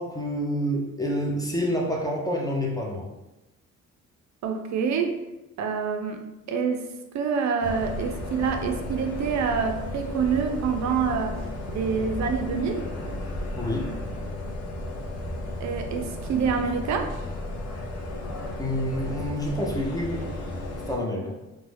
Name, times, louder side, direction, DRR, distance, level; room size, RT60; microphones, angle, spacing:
voice 1, 0.0-3.1 13.5-13.9 18.6-20.3 20.9-21.4, equal, 10° left, -1 dB, 0.5 m, -28 dB
voice 2, 4.4-5.1 5.6-6.2 6.5-6.8 7.1-11.3 11.7-12.8 15.6-17.1, right 6 dB, 65° right, 5 dB, 0.4 m, -26 dB
sound 1, 7.6-21.0, left 1 dB, 60° left, 0.6 m, -34 dB
2.4 x 2.2 x 3.2 m, 0.98 s
cardioid pair, 90°, 30 cm